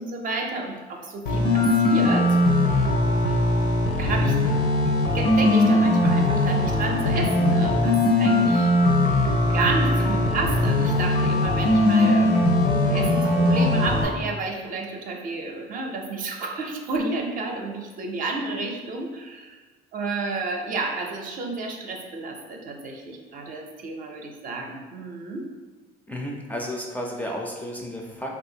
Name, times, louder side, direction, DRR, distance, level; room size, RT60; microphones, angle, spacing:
voice 1, 0.0-2.4 4.0-4.4 5.1-8.7 9.5-19.6 19.9-25.5, right 3 dB, 55° right, 1 dB, 0.5 m, -31 dB
sound 1, 1.3-14.1, left 1 dB, 75° left, 0.6 m, -20 dB
voice 2, 26.1-28.3, equal, 10° left, -1 dB, 0.4 m, -32 dB
3.1 x 2.4 x 2.7 m, 1.4 s
cardioid pair, 110°, 17 cm